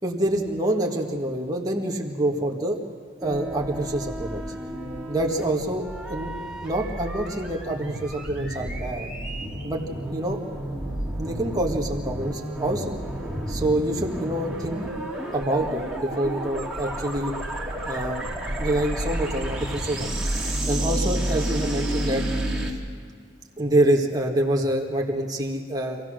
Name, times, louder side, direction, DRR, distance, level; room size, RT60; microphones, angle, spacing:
voice 1, 0.0-2.8 3.2-4.4 5.1-5.8 6.1-9.1 9.6-9.8 10.1-10.4 11.2-13.0 13.4-14.8 15.3-17.3 17.8-18.3 18.6-20.1 20.7-22.2 22.7-22.8 23.6-26.0, right 1 dB, 20° right, -1 dB, 1.8 m, -26 dB
sound 1, 3.2-22.7, right 1 dB, ahead, 2.5 m, -31 dB
26.0 x 16.5 x 6.4 m, 2.2 s
head